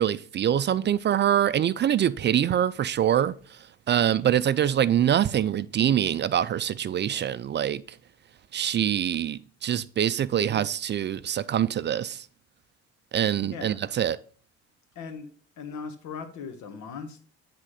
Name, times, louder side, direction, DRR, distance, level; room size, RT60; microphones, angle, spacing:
voice 1, 0.0-3.3 3.9-7.8 8.5-12.2 13.1-14.2, right 10 dB, 35° right, 0.4 m, -24 dB
voice 2, 13.4-13.8 14.9-15.3 15.6-17.2, left 5 dB, 70° left, 1.6 m, -38 dB
9.7 x 3.7 x 4.8 m
supercardioid pair, 80°, 30 cm